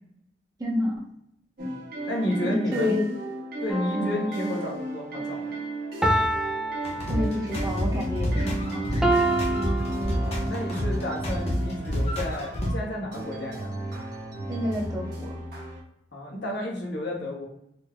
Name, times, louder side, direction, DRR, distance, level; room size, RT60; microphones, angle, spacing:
voice 1, 0.6-1.0 2.4-3.2 4.0-4.3 7.1-8.8 14.5-15.3, left 1 dB, 20° right, -2 dB, 0.8 m, -29 dB
sound 1, 1.6-15.8, right 1 dB, 55° right, 1.2 m, -35 dB
voice 2, 2.1-2.9 3.6-5.6 10.2-13.7 16.1-17.5, left 1 dB, 70° left, -1 dB, 1.1 m, -31 dB
sound 2, 3.7-5.0 6.0-7.7 9.0-10.7 11.4-11.5, right 1 dB, 5° right, 0.3 m, -28 dB
sound 3, 6.8-12.7, equal, 35° left, 0.9 m, -28 dB
4.3 x 2.7 x 2.2 m, 0.76 s
head